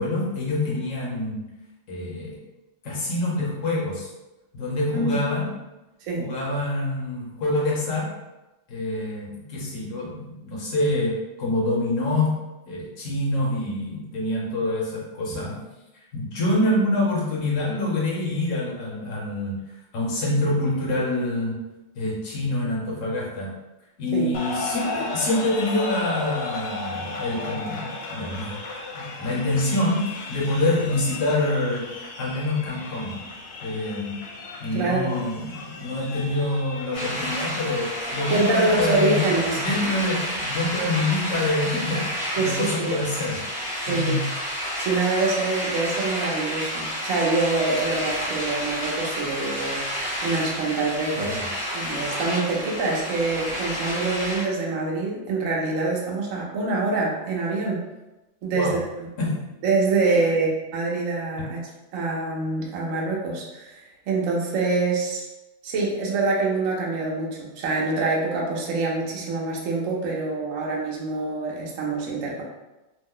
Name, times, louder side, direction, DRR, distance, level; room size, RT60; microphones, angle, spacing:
voice 1, 0.0-1.4 1.9-2.4 2.8-4.1 4.5-5.5 6.2-8.1 8.7-12.4 12.7-15.6 16.1-19.6 19.9-21.6 21.9-23.5 24.0-28.6 28.9-31.9 32.2-33.2 33.6-34.2 34.6-39.3 39.6-43.4 43.9-44.3 51.1-51.4 58.5-58.8 59.2-59.5 61.4-61.5, left 2 dB, 55° left, -3 dB, 1.1 m, -26 dB
voice 2, 4.9-5.2 6.0-6.3 15.3-15.4 24.1-24.3 34.7-35.1 38.3-39.6 42.4-42.9 43.9-44.2 44.8-49.9 50.2-51.4 51.7-57.8 58.4-58.8 59.6-61.6 61.9-65.3 65.6-72.4, right 3 dB, 65° right, -2 dB, 0.8 m, -25 dB
sound 1, 24.3-40.4, left 3 dB, 75° left, 1.2 m, -36 dB
sound 2, 36.9-54.4, equal, 30° left, 0.9 m, -30 dB
3.0 x 2.0 x 3.6 m, 1.0 s
omnidirectional pair, 2.0 m